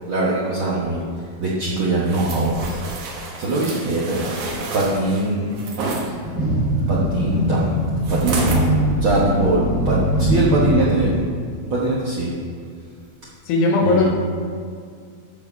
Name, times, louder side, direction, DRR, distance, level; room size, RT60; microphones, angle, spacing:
voice 1, 0.1-1.0 1.4-2.8 3.4-4.3 4.7-5.5 6.9-7.7 8.1-8.7 9.0-11.2 11.7-12.3 13.8-14.1, right 2 dB, 75° right, -7 dB, 1.1 m, -22 dB
sound 1, 2.1-6.1 8.0-8.7 9.2-9.3, right 3 dB, 60° right, 1.8 m, -30 dB
sound 2, 6.1-11.2, equal, 35° right, 2.4 m, -21 dB
voice 2, 13.5-14.1, left 3 dB, 80° left, -1 dB, 3.1 m, -17 dB
14.0 x 4.9 x 5.5 m, 2.2 s
omnidirectional pair, 4.2 m